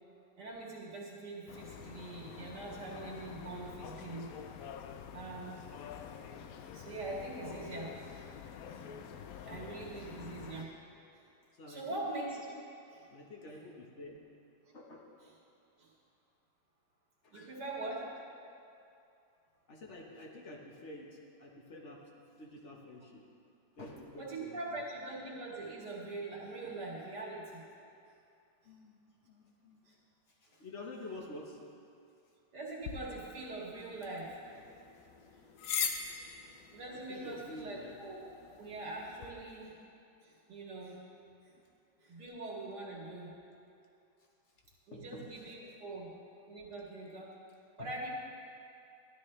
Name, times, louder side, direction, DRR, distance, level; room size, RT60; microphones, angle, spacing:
voice 1, 0.4-4.4 5.1-5.7 6.6-8.3 8.7-8.9 9.4-10.8 11.1-11.2 11.7-12.5 12.9-13.1 15.8-15.9 17.3-18.1 18.5-18.6 24.2-27.6 29.8-29.9 32.5-34.4 35.3-35.4 35.9-36.0 36.7-39.7 40.2-41.0 41.4-41.5 42.0-43.3 44.9-46.1 46.5-47.3 47.8-48.1, right 2 dB, 70° right, -4 dB, 2.5 m, -43 dB
sound 1, 1.5-10.6, left 7 dB, 70° left, 0.9 m, -47 dB
voice 2, 11.5-11.9 13.1-14.2 14.7-15.1 17.2-17.5 19.7-22.0 22.4-23.3 23.8-24.8 26.6-26.7 28.6-29.0 29.2-29.8 30.3-31.7 34.9-35.1 35.6-35.7 36.1-36.3 36.9-38.0 41.6-41.7 44.9-45.5 47.8-47.9, left 2 dB, 45° left, 0 dB, 1.4 m, -49 dB
sound 2, 32.8-39.3, left 7 dB, 85° left, 1.4 m, -42 dB
14.0 x 12.0 x 3.3 m, 2.6 s
omnidirectional pair, 1.9 m